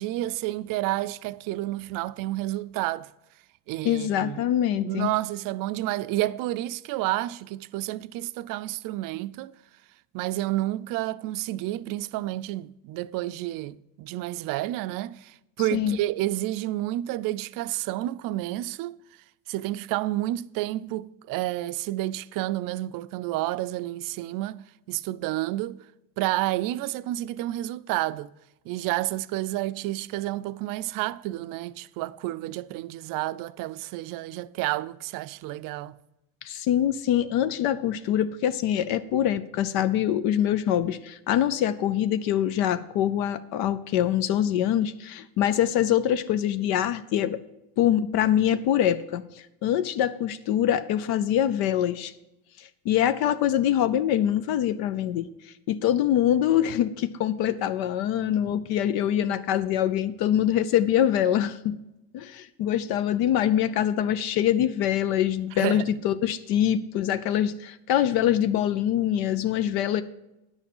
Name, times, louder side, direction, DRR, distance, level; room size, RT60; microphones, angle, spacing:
voice 1, 0.0-3.1 3.7-4.5 4.8-9.5 10.1-19.0 19.5-24.6 24.9-25.8 26.2-28.3 28.7-36.0 65.6-65.9, right 16 dB, 60° right, 0.5 m, -30 dB
voice 2, 3.8-5.1 15.7-16.0 36.4-47.4 47.8-52.1 52.6-61.8 62.1-70.0, left 10 dB, 75° left, 0.6 m, -24 dB
10.5 x 7.1 x 5.4 m
cardioid pair, 155°, 37 cm